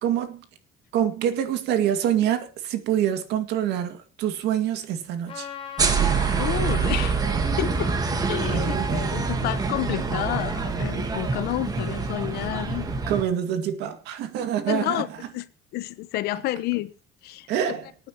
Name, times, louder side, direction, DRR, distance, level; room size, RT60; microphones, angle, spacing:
voice 1, 0.0-0.4 0.9-5.5 8.5-9.2 13.1-15.0 17.5-17.9, right 10 dB, 70° right, 2.1 m, -26 dB
Trumpet, 5.3-9.9, left 8 dB, 30° left, 4.0 m, -42 dB
sound 1, 5.8-13.2, right 4 dB, 20° right, 1.5 m, -25 dB
voice 2, 6.0-7.1 7.6-7.9 8.3-12.9 14.7-15.1 15.3-15.4 15.7-16.9 17.2-17.7, left 15 dB, 65° left, 1.0 m, -30 dB
26.0 x 9.2 x 3.0 m
cardioid pair, 175°, 18 cm